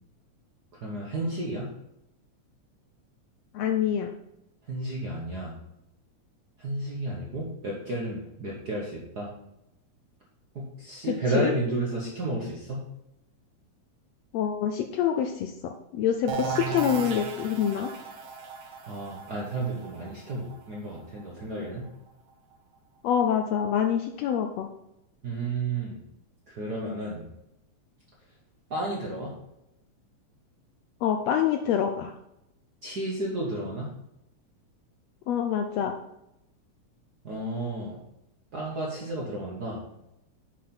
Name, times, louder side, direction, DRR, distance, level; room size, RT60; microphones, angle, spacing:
voice 1, 0.8-1.7 4.7-5.5 6.6-9.3 10.5-12.8 18.8-21.8 25.2-26.0 26.5-27.3 28.7-29.3 32.8-33.9 37.2-38.0 38.5-39.9, right 2 dB, 55° right, -3 dB, 1.1 m, -32 dB
voice 2, 3.5-4.1 11.0-11.5 14.3-17.9 23.0-24.7 31.0-32.1 35.3-35.9, left 9 dB, 80° left, 5 dB, 1.5 m, -26 dB
sound 1, 16.3-21.9, right 5 dB, 75° right, 2.3 m, -36 dB
7.3 x 5.6 x 4.4 m, 0.85 s
omnidirectional pair, 3.4 m